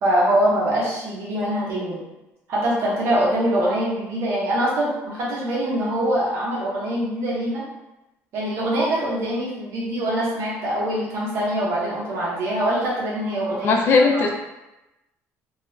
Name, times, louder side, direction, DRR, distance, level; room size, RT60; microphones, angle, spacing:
voice 1, 0.0-2.0 2.5-7.6 8.3-13.8 14.1-14.2, right 1 dB, 50° right, -6 dB, 0.9 m, -23 dB
voice 2, 13.6-14.3, left 4 dB, 45° left, 2 dB, 0.3 m, -17 dB
2.3 x 2.3 x 3.0 m, 0.98 s
cardioid pair, 170°, 6 cm